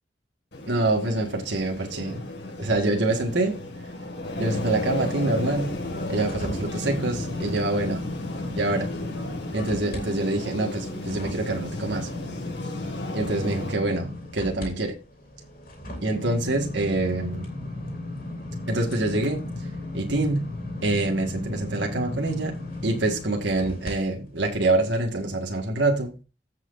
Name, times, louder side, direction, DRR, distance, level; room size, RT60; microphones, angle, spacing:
sound 1, 0.5-13.7, left 1 dB, 70° left, 2.1 m, -34 dB
voice 1, 0.7-2.2 2.6-3.6 4.4-5.7 6.1-8.1 8.5-8.9 9.5-12.1 13.1-14.1 14.3-14.9 16.0-17.5 18.7-19.4 19.9-20.4 20.8-22.5 22.8-26.1, right 2 dB, 75° right, 2 dB, 1.8 m, -25 dB
sound 2, 5.4-10.0 10.4-23.9 24.4-24.5, left 2 dB, 50° left, 3.2 m, -36 dB
15.0 x 6.0 x 2.7 m, 0.31 s
head